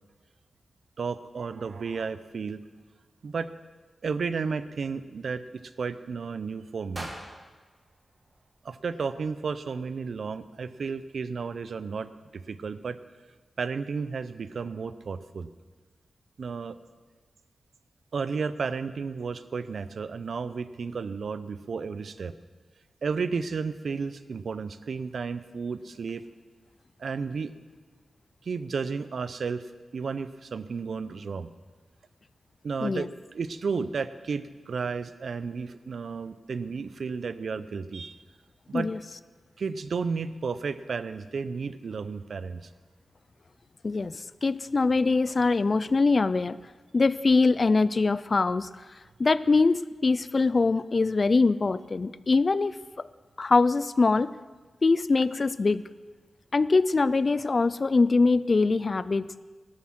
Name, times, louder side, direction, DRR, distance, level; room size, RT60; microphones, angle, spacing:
voice 1, 1.0-2.6 3.2-3.5 4.0-7.1 8.6-13.0 13.6-15.5 16.4-16.8 18.1-22.3 23.0-26.2 27.0-27.5 28.4-29.6 29.9-31.5 32.6-38.2 38.7-38.9 39.6-42.7, right 5 dB, 65° right, 14 dB, 0.5 m, -33 dB
sound 1, 6.9-9.1, right 1 dB, 25° right, 1.7 m, -44 dB
voice 2, 43.8-46.6 46.9-48.7 49.2-53.1 53.4-54.3 54.8-55.8 56.5-59.2, left 3 dB, 35° left, 17 dB, 0.3 m, -23 dB
12.5 x 9.7 x 5.9 m, 1.4 s
wide cardioid pair, 155°, 0 cm